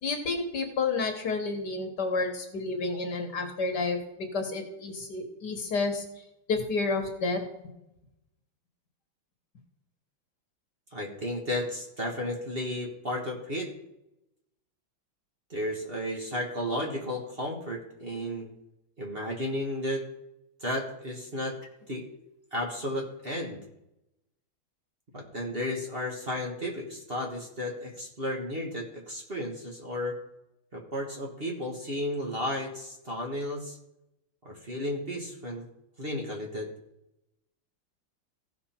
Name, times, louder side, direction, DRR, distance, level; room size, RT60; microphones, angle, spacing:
voice 1, 0.0-4.0 4.3-6.0 6.5-7.4, left 3 dB, 55° left, 4 dB, 1.8 m, -30 dB
voice 2, 10.9-13.7 15.5-18.5 19.0-20.0 20.6-21.6 21.9-22.1 22.5-23.7 25.1-30.2 30.7-33.8 34.4-35.7 36.0-36.7, left 1 dB, 30° right, 0 dB, 1.5 m, -33 dB
16.0 x 5.4 x 4.4 m, 0.87 s
omnidirectional pair, 2.2 m